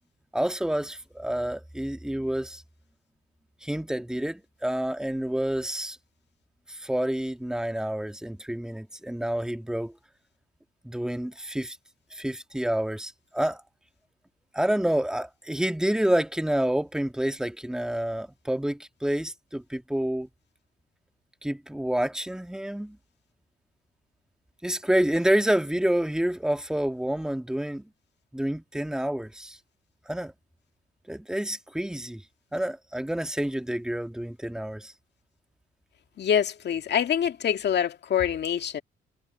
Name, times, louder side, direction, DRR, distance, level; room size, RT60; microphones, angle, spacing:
voice 1, 0.3-2.6 3.6-6.0 6.7-9.9 10.8-11.8 12.1-13.6 14.5-20.3 21.4-23.0 24.6-27.9 28.3-29.6 30.1-30.3 31.1-32.2 32.5-34.9, right 1 dB, 5° right, 1.9 m, -28 dB
voice 2, 36.2-38.8, left 9 dB, 60° left, 2.1 m, -25 dB
cardioid pair, 90°, 20 cm